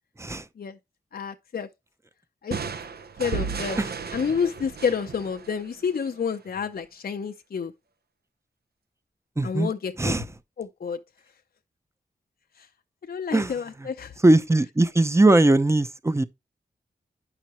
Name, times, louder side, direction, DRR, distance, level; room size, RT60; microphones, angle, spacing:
voice 1, 1.1-1.7 2.4-2.6 3.2-3.8 4.1-7.7 9.4-10.2 10.6-11.0 12.6-12.7 13.0-14.2, left 6 dB, 60° left, 0.6 m, -29 dB
sound 1, 2.5-6.2, right 5 dB, 65° right, 0.7 m, -34 dB
voice 2, 9.4-9.7 10.0-10.2 13.3-13.5 14.2-16.2, right 2 dB, 15° right, 0.7 m, -20 dB
9.3 x 5.7 x 3.0 m
cardioid pair, 60°, 17 cm